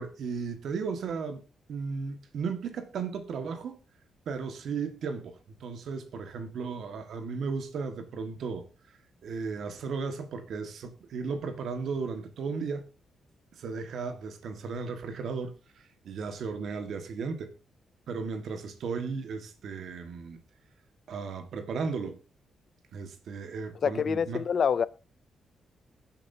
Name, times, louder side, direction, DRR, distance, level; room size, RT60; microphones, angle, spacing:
voice 1, 0.0-1.4 1.7-3.8 4.2-8.6 9.2-12.8 13.5-15.5 16.0-17.5 18.1-20.4 21.1-22.2 22.9-24.4, right 5 dB, 60° right, 1.6 m, -35 dB
voice 2, 23.8-24.9, left 7 dB, 45° left, 0.5 m, -26 dB
22.0 x 7.4 x 2.7 m
wide cardioid pair, 165°, 0 cm